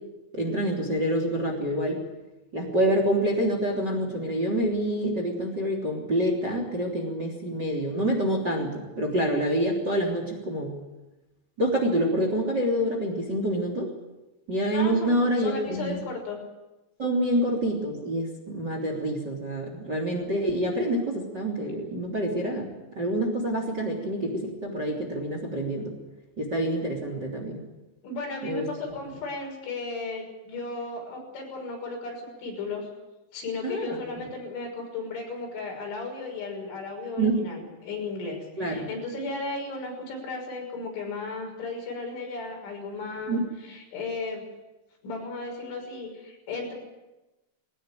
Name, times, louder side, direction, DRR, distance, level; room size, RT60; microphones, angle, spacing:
voice 1, 0.3-2.0 2.5-10.7 11.6-13.9 14.5-16.0 17.0-22.7 22.9-25.9 26.4-27.6 28.4-28.6 33.6-34.0 37.2-37.4 38.6-38.9 43.3-43.5, right 1 dB, 25° right, 2 dB, 3.2 m, -27 dB
voice 2, 14.7-16.4 28.0-32.9 33.3-44.4 45.0-46.7, left 3 dB, 70° left, 1 dB, 8.3 m, -35 dB
21.5 x 19.5 x 9.2 m, 1.0 s
omnidirectional pair, 5.7 m